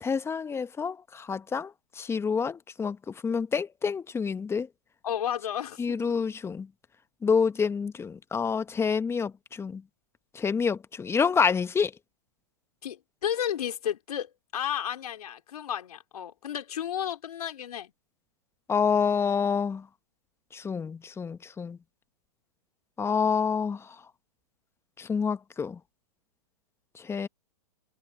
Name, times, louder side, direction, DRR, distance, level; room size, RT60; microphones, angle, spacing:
voice 1, 0.0-1.7 2.0-3.0 3.2-4.7 5.8-6.7 7.2-9.3 9.6-9.8 10.3-11.9 18.7-19.8 20.5-21.8 23.0-23.8 25.0-25.8 27.1-27.3, left 6 dB, 15° left, 1.2 m, -27 dB
voice 2, 5.0-6.2 12.8-17.9, left 10 dB, 70° left, 3.7 m, -33 dB
hypercardioid pair, 115°, 20 cm